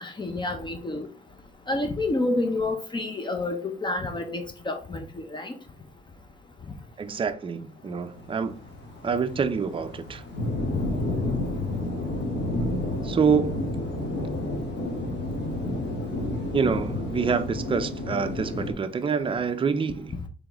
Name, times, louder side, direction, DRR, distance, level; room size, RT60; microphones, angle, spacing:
voice 1, 0.0-1.1 1.7-5.0 5.3-5.5 10.7-10.8, left 2 dB, 25° left, 0.6 m, -29 dB
voice 2, 7.0-8.6 9.0-10.2 13.0-13.7 16.5-20.1, right 5 dB, 25° right, 0.5 m, -26 dB
sound 1, 8.0-18.7, left 1 dB, 65° left, 1.6 m, -30 dB
3.7 x 3.5 x 2.9 m
cardioid pair, 90°, 20 cm